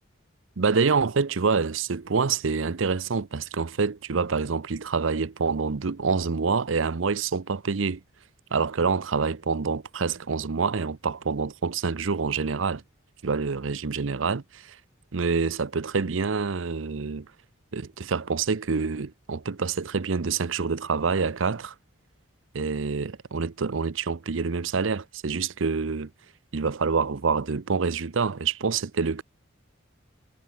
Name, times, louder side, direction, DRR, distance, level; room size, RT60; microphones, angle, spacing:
voice 1, 0.6-8.0 8.5-12.8 13.2-14.8 15.1-17.3 17.7-21.7 22.5-26.1 26.5-29.2, right 5 dB, 80° right, 0.7 m, -26 dB
head